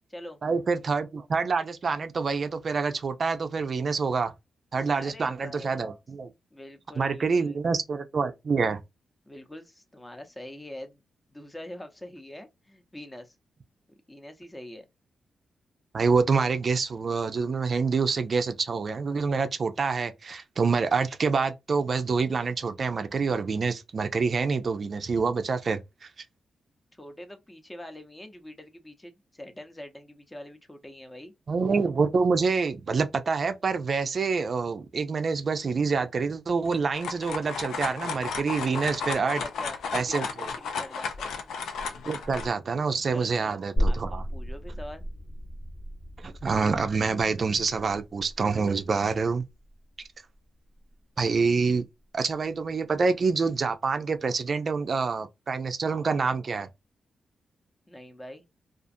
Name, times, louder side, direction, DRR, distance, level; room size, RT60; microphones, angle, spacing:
voice 1, 0.4-4.3 4.7-6.3 7.0-8.8 15.9-26.1 31.5-39.4 39.9-40.3 42.1-44.2 46.2-49.4 51.2-51.8 52.1-56.7, right 4 dB, 50° right, 0.4 m, -26 dB
voice 2, 4.9-5.8 6.5-7.6 9.3-11.0 11.3-13.4 14.1-14.8 26.9-31.3 39.2-41.3 43.1-43.6 43.9-45.1 57.9-58.4, left 1 dB, 20° left, 0.6 m, -44 dB
sound 1, 36.7-42.5, left 5 dB, 85° left, 0.4 m, -34 dB
sound 2, 43.8-51.0 51.4-51.5, equal, 40° left, 1.0 m, -34 dB
2.4 x 2.4 x 2.5 m
cardioid pair, 70°, 0 cm